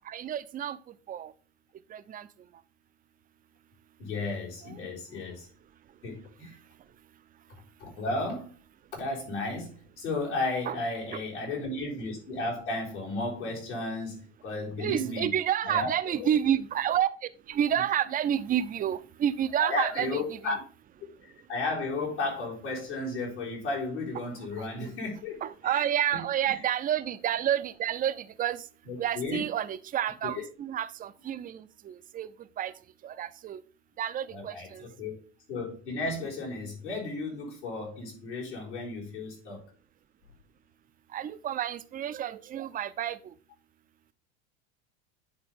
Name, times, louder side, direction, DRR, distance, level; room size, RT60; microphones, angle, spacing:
voice 1, 0.1-0.8 1.1-1.3 1.9-2.3 4.6-4.8 10.7-10.8 11.1-11.2 14.8-20.4 24.6-24.9 25.4-28.6 29.0-32.3 32.6-32.7 33.0-33.6 34.0-34.8 41.1-43.2, right 10 dB, 25° right, 13 dB, 0.5 m, -30 dB
voice 2, 4.0-5.5 6.0-6.6 7.8-8.5 8.9-15.3 15.6-16.3 19.6-20.6 21.2-25.8 26.1-26.6 28.9-29.4 30.2-30.4 34.3-35.2 35.5-39.6, left 2 dB, 85° left, -5 dB, 4.1 m, -34 dB
10.0 x 3.9 x 3.5 m, 0.39 s
hypercardioid pair, 85°, 34 cm